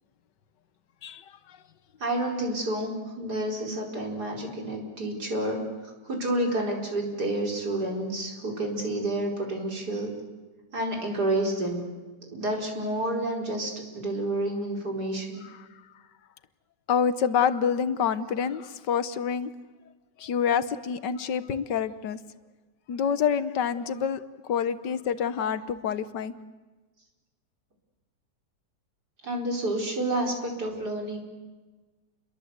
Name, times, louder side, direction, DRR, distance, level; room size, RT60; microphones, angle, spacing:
voice 1, 2.0-10.1 10.7-11.8 12.3-15.4 29.2-31.2, right 1 dB, 65° right, 1 dB, 5.1 m, -29 dB
voice 2, 16.9-19.5 20.2-22.2 22.9-24.2 24.5-26.3, left 7 dB, 75° left, 13 dB, 1.7 m, -27 dB
29.5 x 22.5 x 8.1 m, 1.3 s
omnidirectional pair, 1.9 m